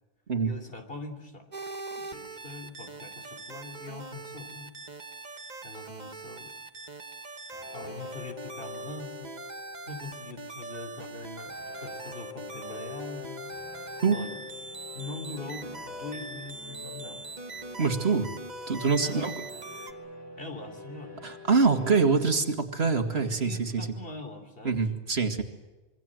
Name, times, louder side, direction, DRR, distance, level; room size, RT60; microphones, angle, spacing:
voice 1, 0.4-1.5 2.0-4.7 5.6-6.5 7.7-9.3 9.9-13.5 14.1-14.4 14.9-17.3 19.0-19.4 20.4-21.3 23.2-24.8, left 3 dB, 55° left, 6 dB, 3.5 m, -42 dB
sound 1, 1.5-19.9, right 2 dB, 40° right, 1.5 m, -42 dB
sound 2, 7.5-10.7 11.5-22.4, left 3 dB, 20° left, 5.3 m, -45 dB
voice 2, 17.8-18.3 18.7-19.3 21.2-23.9 24.6-25.4, right 4 dB, 70° right, 6 dB, 2.4 m, -25 dB
26.5 x 24.0 x 7.8 m, 1.2 s
omnidirectional pair, 1.1 m